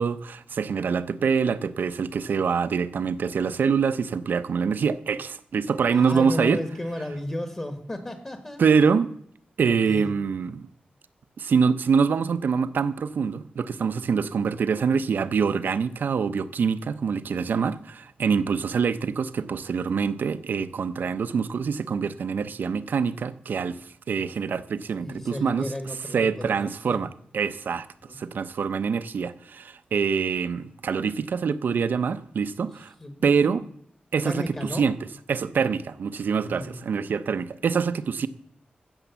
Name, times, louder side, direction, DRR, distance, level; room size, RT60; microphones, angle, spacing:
voice 1, 0.0-6.6 8.6-9.1 9.6-10.7 11.4-23.8 24.1-25.7 26.1-27.1 27.3-27.9 28.2-32.9 33.2-33.6 34.1-35.0 35.3-38.3, right 6 dB, 75° right, 0.6 m, -25 dB
voice 2, 5.9-8.6 9.7-10.1 14.2-14.3 24.9-27.0 28.0-28.2 32.6-32.7 33.0-33.1 33.4-33.6 34.2-34.9 36.4-36.8, left 1 dB, 20° left, 1.2 m, -34 dB
15.0 x 7.1 x 7.0 m
wide cardioid pair, 175°, 3 cm